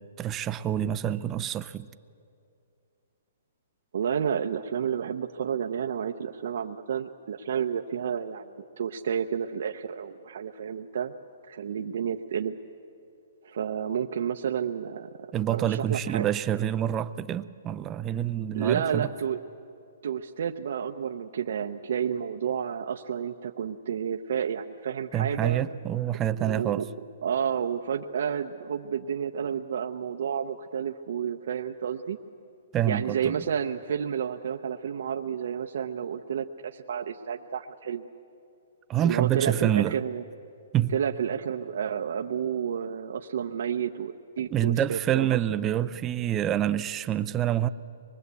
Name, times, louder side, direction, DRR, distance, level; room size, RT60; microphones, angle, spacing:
voice 1, 0.0-1.9 15.3-19.1 25.1-26.9 32.7-33.4 38.9-39.9 40.7-40.9 44.5-47.7, right 11 dB, 15° right, 0.5 m, -27 dB
voice 2, 3.9-11.1 11.5-12.6 13.4-16.3 18.5-19.4 20.0-25.6 26.5-26.9 27.2-32.2 32.9-38.1 39.0-40.2 40.9-45.4, right 8 dB, 65° right, 0.8 m, -30 dB
24.5 x 21.5 x 8.2 m
hypercardioid pair, 165°, 0 cm